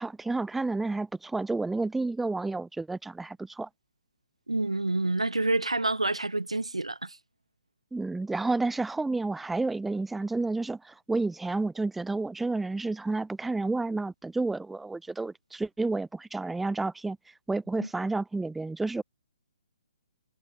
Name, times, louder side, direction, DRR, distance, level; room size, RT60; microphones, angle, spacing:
voice 1, 0.0-3.7 7.9-19.0, right 3 dB, 5° right, 1.3 m, -30 dB
voice 2, 4.5-7.2, right 2 dB, 85° right, 5.4 m, -28 dB
figure-of-eight pair, 130°, 3 cm